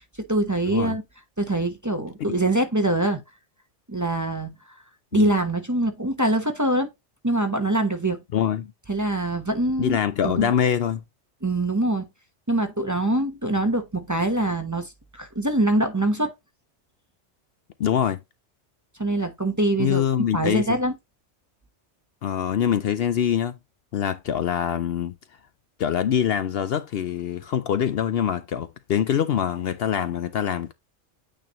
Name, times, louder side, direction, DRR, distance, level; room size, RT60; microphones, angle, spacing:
voice 1, 0.3-1.0 1.4-3.2 3.9-4.5 5.1-6.9 7.2-8.2 8.9-10.0 10.2-10.5 11.4-12.1 12.5-16.3 19.0-20.0 20.3-20.9, right 1 dB, 15° right, 0.8 m, -24 dB
voice 2, 8.3-8.7 9.8-11.0 17.8-18.2 19.8-20.7 22.2-23.5 23.9-25.1 25.8-30.7, left 9 dB, 65° left, 0.7 m, -24 dB
9.0 x 4.3 x 2.9 m
omnidirectional pair, 1.2 m